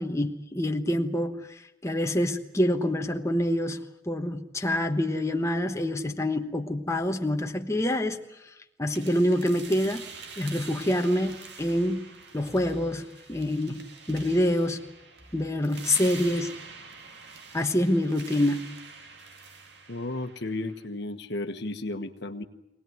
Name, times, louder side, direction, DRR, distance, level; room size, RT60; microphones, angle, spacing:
voice 1, 0.0-8.2 8.8-10.0 10.4-14.8 15.3-16.5 17.5-18.6, left 1 dB, 15° left, 4 dB, 1.1 m, -26 dB
sound 1, 8.9-20.9, right 5 dB, 60° right, 2.4 m, -45 dB
voice 2, 19.9-22.4, left 2 dB, 60° left, 8 dB, 1.3 m, -33 dB
23.5 x 18.5 x 9.4 m, 0.91 s
head